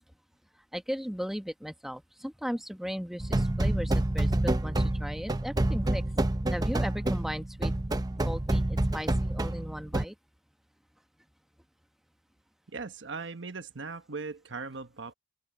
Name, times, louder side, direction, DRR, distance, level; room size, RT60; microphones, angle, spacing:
voice 1, 0.7-6.0 6.5-7.7 8.2-10.1, equal, ahead, 1.1 m, -37 dB
sound 1, 3.2-10.1, right 1 dB, 20° right, 0.7 m, -28 dB
voice 2, 12.7-15.1, right 4 dB, 85° right, 1.2 m, -39 dB
head